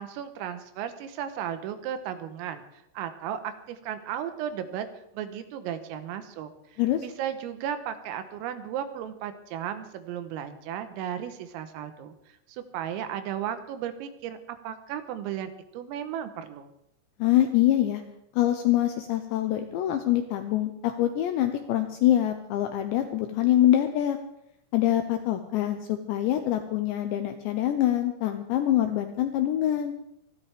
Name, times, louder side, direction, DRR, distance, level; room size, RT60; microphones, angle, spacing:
voice 1, 0.0-4.9 5.1-12.2 12.5-14.4 14.6-16.7, right 9 dB, 80° right, 9 dB, 3.7 m, -35 dB
voice 2, 17.2-18.0 18.4-24.2 24.7-29.9, left 12 dB, 80° left, 7 dB, 2.6 m, -25 dB
26.0 x 11.5 x 3.5 m, 0.80 s
omnidirectional pair, 6.0 m